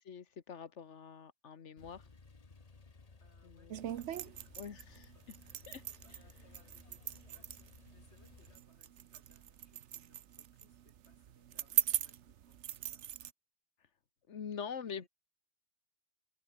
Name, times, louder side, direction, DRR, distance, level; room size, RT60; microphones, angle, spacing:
voice 1, 0.0-2.1 3.4-3.9 4.6-5.1 5.7-5.8 14.3-15.1, left 7 dB, 90° left, 1.6 m, -45 dB
Male speech man speaking / Car / Idling, 1.8-8.6, left 4 dB, 35° left, 1.4 m, -59 dB
voice 2, 3.2-4.7 5.1-5.7 6.0-13.2 14.9-15.1, left 2 dB, 70° left, 5.5 m, -69 dB
sound 1, 3.7-13.3, right 11 dB, 80° right, 1.1 m, -40 dB
omnidirectional pair, 1.2 m